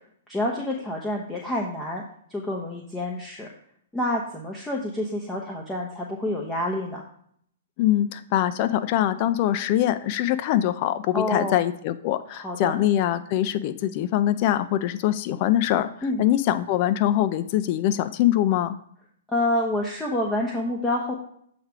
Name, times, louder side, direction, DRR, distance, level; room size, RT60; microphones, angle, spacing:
voice 1, 0.3-2.0 2.3-3.5 3.9-7.0 11.1-11.6 12.3-12.7 16.0-16.2 19.3-21.1, left 1 dB, 10° left, -2 dB, 1.0 m, -28 dB
voice 2, 7.8-15.9 16.2-18.8, left 12 dB, 45° left, 12 dB, 0.4 m, -23 dB
7.9 x 3.3 x 4.9 m, 0.66 s
hypercardioid pair, 125°, 0 cm